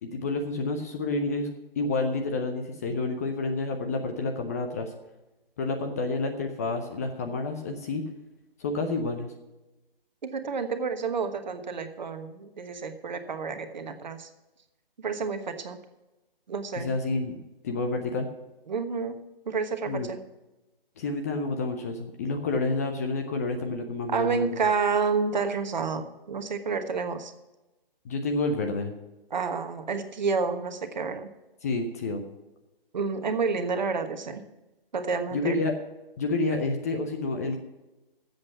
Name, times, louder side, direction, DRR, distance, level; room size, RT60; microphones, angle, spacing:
voice 1, 0.0-1.5 1.8-4.9 5.6-8.1 8.6-9.3 16.7-18.3 19.9-20.1 21.0-24.5 28.0-28.9 31.6-32.2 35.3-35.7 36.2-37.6, left 3 dB, 15° left, 4 dB, 0.6 m, -29 dB
voice 2, 10.2-14.3 15.0-15.8 16.5-16.9 18.7-19.2 19.5-20.2 24.1-27.3 29.3-31.3 32.9-34.4 34.9-35.6, right 5 dB, 50° right, 8 dB, 1.3 m, -29 dB
13.0 x 7.9 x 5.9 m, 1.0 s
figure-of-eight pair, 135°, 29 cm